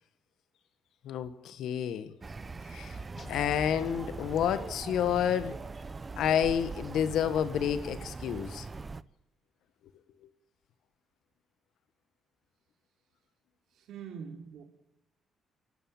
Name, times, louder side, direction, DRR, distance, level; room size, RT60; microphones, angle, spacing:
voice 1, 1.0-2.1 2.7-3.0 3.3-5.6 6.2-8.7, left 9 dB, 80° left, 1.5 m, -29 dB
sound 1, 2.2-9.0, right 3 dB, 30° right, 0.8 m, -41 dB
sound 2, 3.2-5.1, left 2 dB, 40° left, 1.4 m, -48 dB
voice 2, 13.9-14.6, right 6 dB, 75° right, 3.8 m, -43 dB
28.5 x 12.5 x 9.0 m
cardioid pair, 90°, 0 cm